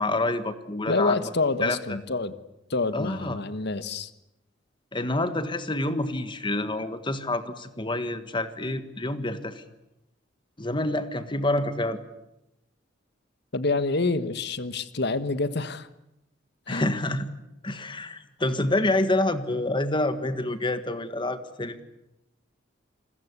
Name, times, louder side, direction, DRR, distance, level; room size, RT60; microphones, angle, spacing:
voice 1, 0.0-1.2 1.6-1.8 2.9-3.4 4.9-9.6 10.6-12.0 16.7-17.3 17.6-21.8, left 2 dB, 25° left, 10 dB, 1.6 m, -27 dB
voice 2, 0.9-2.3 2.7-4.1 13.5-15.9 16.7-16.9, left 3 dB, 60° left, 13 dB, 1.4 m, -27 dB
29.0 x 21.5 x 8.3 m, 0.88 s
head